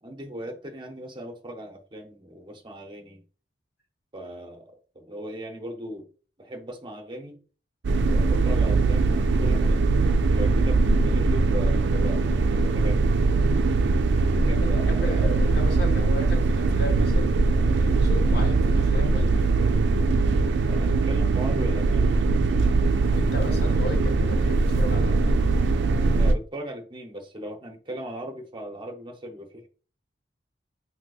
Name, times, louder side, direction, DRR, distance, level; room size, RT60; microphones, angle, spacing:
voice 1, 0.0-3.2 4.1-6.1 6.4-7.4 8.1-9.9 10.3-13.0 14.3-15.5 20.6-22.1 26.0-29.7, right 1 dB, 30° right, 4 dB, 0.6 m, -38 dB
sound 1, 7.8-26.3, right 3 dB, 80° right, 0.4 m, -21 dB
voice 2, 14.2-19.5 23.1-25.5, left 1 dB, 65° left, 3 dB, 0.8 m, -35 dB
3.8 x 2.7 x 2.3 m, 0.38 s
head